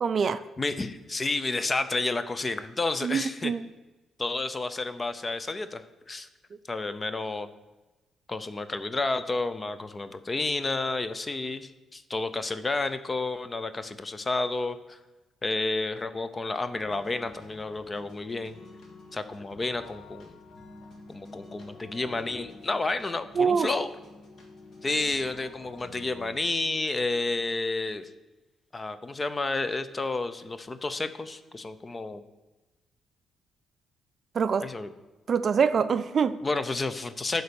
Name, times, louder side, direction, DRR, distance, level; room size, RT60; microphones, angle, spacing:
voice 1, 0.0-0.4 3.0-3.6 23.4-23.7 34.3-34.6 35.3-36.3, right 6 dB, 40° right, 12 dB, 0.3 m, -24 dB
voice 2, 0.6-3.5 4.2-5.8 6.1-6.3 6.7-7.5 8.3-15.0 15.4-18.6 19.1-20.4 21.1-23.9 24.8-28.1 28.7-32.2 34.6-34.9 36.4-37.4, left 3 dB, 20° left, 12 dB, 0.5 m, -30 dB
sound 1, 16.7-26.4, left 3 dB, 50° left, 1.6 m, -49 dB
11.0 x 4.0 x 6.9 m, 1.1 s
cardioid pair, 145°, 0 cm